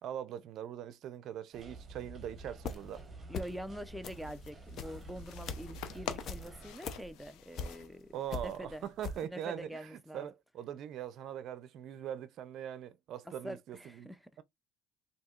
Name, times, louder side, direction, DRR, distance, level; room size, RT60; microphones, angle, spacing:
voice 1, 0.0-3.0 8.1-14.1 14.4-14.5, right 10 dB, 60° right, 0.5 m, -42 dB
sound 1, 1.5-6.7, right 2 dB, 25° right, 1.1 m, -50 dB
sound 2, 2.4-3.0 3.3-3.7 4.0-8.0 8.3-9.2, left 4 dB, 50° left, 0.6 m, -42 dB
voice 2, 3.3-8.1 8.4-8.8 9.3-10.3 13.4-14.2, equal, ahead, 0.4 m, -45 dB
sound 3, 4.0-9.0, left 8 dB, 90° left, 0.6 m, -47 dB
4.2 x 2.7 x 2.3 m
cardioid pair, 135°, 0 cm